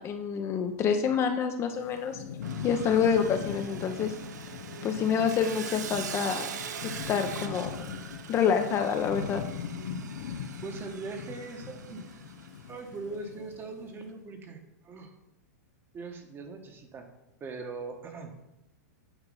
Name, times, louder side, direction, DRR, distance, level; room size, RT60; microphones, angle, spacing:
voice 1, 0.0-2.2 2.6-4.1 4.8-6.5 6.8-7.9 8.3-9.4, left 7 dB, 30° left, 6 dB, 0.5 m, -27 dB
Thunderstorm / Rain, 1.7-14.0, left 7 dB, 75° left, 0.5 m, -40 dB
Sawing, 2.4-12.7, right 7 dB, 85° right, 0.6 m, -43 dB
voice 2, 10.6-12.1 12.7-15.1 15.9-17.1 17.4-18.3, right 3 dB, 25° right, 5 dB, 1.0 m, -40 dB
8.0 x 3.0 x 5.3 m, 0.90 s
hypercardioid pair, 125°, 9 cm